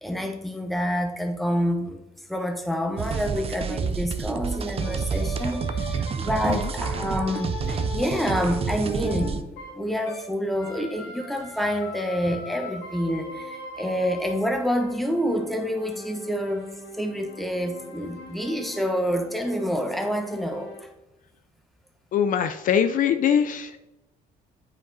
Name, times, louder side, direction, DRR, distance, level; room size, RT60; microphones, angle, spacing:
voice 1, 0.0-2.0 2.3-16.7 16.9-20.9, equal, ahead, 4 dB, 1.0 m, -28 dB
sound 1, 3.0-9.4, right 6 dB, 35° right, 0.6 m, -29 dB
sound 2, 4.8-10.3 10.6-20.8, left 3 dB, 85° left, 1.9 m, -40 dB
voice 2, 22.1-23.8, left 8 dB, 55° left, 10 dB, 0.5 m, -22 dB
8.5 x 5.2 x 4.0 m, 0.96 s
cardioid pair, 110°, 17 cm